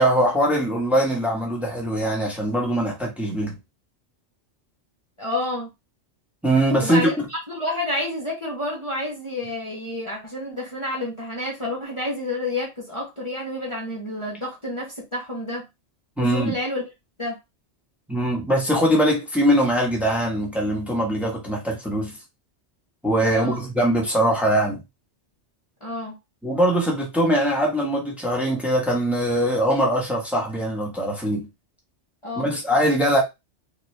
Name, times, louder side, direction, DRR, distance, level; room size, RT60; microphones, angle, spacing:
voice 1, 0.0-3.5 6.4-7.1 16.2-16.5 18.1-22.2 23.0-24.8 26.4-31.5 32.4-33.2, right 1 dB, ahead, 1.3 m, -22 dB
voice 2, 5.2-5.7 6.8-15.7 16.2-16.8 17.2-17.4 23.3-23.6 25.8-26.2 32.2-32.5, left 1 dB, 25° left, 1.1 m, -29 dB
4.2 x 2.9 x 3.2 m
omnidirectional pair, 1.2 m